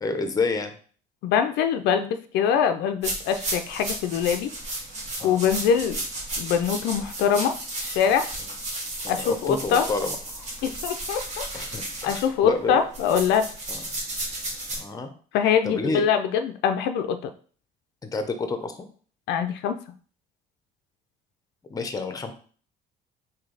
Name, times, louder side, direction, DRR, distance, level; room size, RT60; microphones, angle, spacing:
voice 1, 0.0-0.7 5.2-5.4 9.0-10.5 11.5-12.8 13.7-13.8 14.8-15.1 15.6-16.0 18.0-18.8 21.7-22.3, left 3 dB, 20° left, 7 dB, 0.6 m, -29 dB
voice 2, 1.2-4.5 5.2-6.0 6.4-7.6 7.8-8.3 9.1-9.9 10.6-11.5 12.0-13.5 15.3-17.2 19.3-19.8, left 8 dB, 85° left, 8 dB, 0.4 m, -23 dB
sound 1, 3.0-14.8, right 2 dB, 45° right, 1.3 m, -34 dB
3.2 x 2.7 x 3.8 m, 0.43 s
cardioid pair, 110°, 17 cm